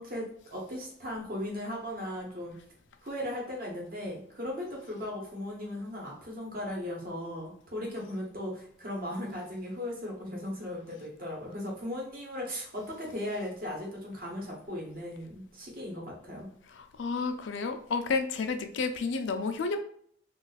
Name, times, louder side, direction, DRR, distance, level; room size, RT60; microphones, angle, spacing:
voice 1, 0.0-2.5 3.0-16.5, left 1 dB, 45° right, -1 dB, 1.0 m, -37 dB
voice 2, 16.7-19.8, left 4 dB, 75° left, 7 dB, 0.4 m, -31 dB
2.4 x 2.4 x 3.9 m, 0.63 s
head